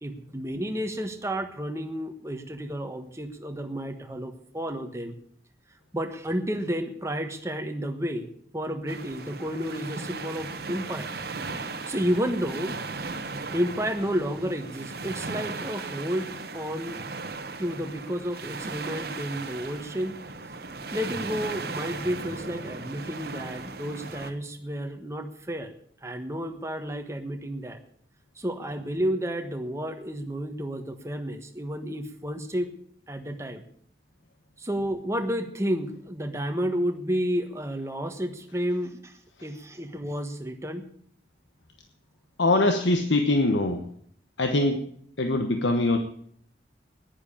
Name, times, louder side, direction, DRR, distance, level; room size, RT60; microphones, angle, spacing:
voice 1, 0.0-5.1 5.9-8.3 8.5-11.1 11.9-12.8 13.5-17.0 17.6-20.2 20.9-25.7 26.0-27.8 28.4-32.7 33.1-33.6 34.6-40.9, equal, 15° right, 6 dB, 1.3 m, -31 dB
sound 1, 8.9-24.3, right 3 dB, 55° right, 1.1 m, -37 dB
voice 2, 42.4-43.8 44.4-44.8 45.2-46.0, left 2 dB, 90° left, 5 dB, 1.1 m, -23 dB
10.5 x 10.5 x 8.7 m, 0.65 s
head